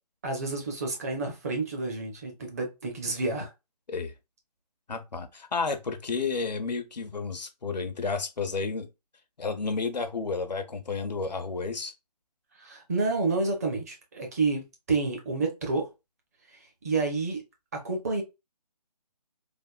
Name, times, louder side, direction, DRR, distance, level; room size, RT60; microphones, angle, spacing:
voice 1, 0.2-3.5 12.6-15.9 16.8-17.4 17.7-18.2, right 3 dB, 25° right, 0.5 m, -29 dB
voice 2, 4.9-8.9 9.4-11.9, left 4 dB, 90° left, 0.7 m, -31 dB
3.4 x 2.0 x 2.3 m
figure-of-eight pair, 155°, 21 cm